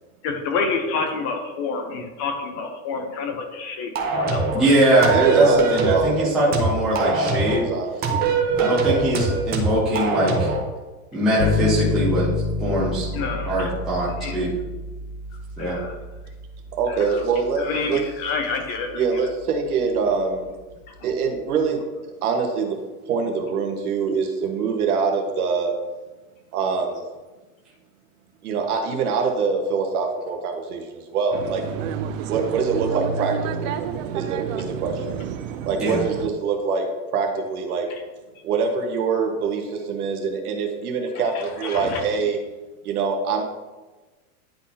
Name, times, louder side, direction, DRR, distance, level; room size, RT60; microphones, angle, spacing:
voice 1, 0.2-4.7 13.1-13.7 14.2-14.4 15.6-15.9 16.9-17.2 17.6-19.0 20.9-21.0 37.9-38.0 41.3-42.0, left 4 dB, 35° left, 5 dB, 0.8 m, -28 dB
sound 1, 4.0-4.6 5.0-6.1 6.5-7.6 8.0-10.6, right 4 dB, 20° right, 0.8 m, -22 dB
voice 2, 4.5-7.6 8.6-10.5 11.1-12.3 12.6-13.1 13.5-14.5 15.6-15.8 35.8-36.0, right 1 dB, ahead, -8 dB, 0.3 m, -21 dB
voice 3, 5.1-6.6 7.5-8.3 8.7-9.4 16.8-18.0 18.9-20.5 21.0-21.8 22.2-22.8 23.1-25.7 26.5-27.0 28.4-31.6 32.3-33.7 34.1-35.1 35.6-36.9 37.1-37.9 38.4-42.4 42.8-43.4, right 5 dB, 75° right, 3 dB, 1.4 m, -24 dB
sound 2, 11.4-21.3, left 3 dB, 75° left, 0.7 m, -30 dB
sound 3, 31.3-36.3, right 7 dB, 60° right, 0.6 m, -29 dB
10.5 x 4.0 x 2.8 m, 1.2 s
supercardioid pair, 150°, 44 cm